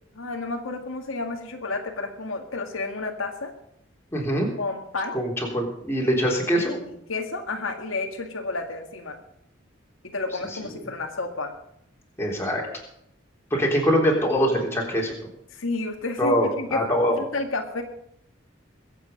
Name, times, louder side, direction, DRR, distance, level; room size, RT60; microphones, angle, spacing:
voice 1, 0.1-3.5 4.6-5.2 6.6-9.2 10.0-11.5 15.5-16.8 17.1-17.8, left 3 dB, 85° left, 3 dB, 1.8 m, -31 dB
voice 2, 4.1-4.5 5.1-6.8 12.2-12.6 13.5-15.1 16.2-17.2, equal, 10° left, -2 dB, 3.5 m, -23 dB
22.0 x 8.0 x 5.3 m, 0.75 s
head